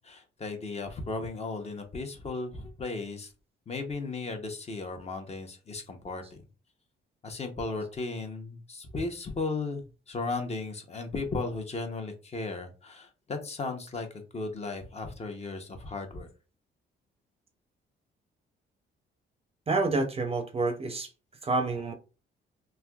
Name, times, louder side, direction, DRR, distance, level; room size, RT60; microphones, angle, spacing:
voice 1, 0.0-3.3 3.7-6.4 7.2-16.3, left 3 dB, 35° left, 0.8 m, -36 dB
voice 2, 19.7-21.1 21.4-21.9, right 3 dB, 30° right, 0.6 m, -28 dB
3.3 x 2.5 x 2.3 m
cardioid pair, 90°, 20 cm